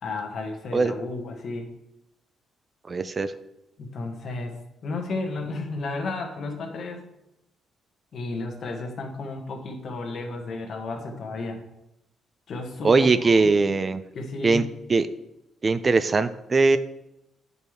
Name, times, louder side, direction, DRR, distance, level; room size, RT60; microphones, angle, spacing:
voice 1, 0.0-1.7 3.8-7.0 8.1-11.6 12.5-13.5 14.1-14.7, left 3 dB, 60° left, 3 dB, 1.3 m, -33 dB
voice 2, 2.9-3.3 12.8-14.0 14.4-14.6 14.9-15.1 15.6-16.8, right 3 dB, 35° right, 12 dB, 0.4 m, -20 dB
8.6 x 5.4 x 3.2 m, 0.88 s
cardioid pair, 90°, 0 cm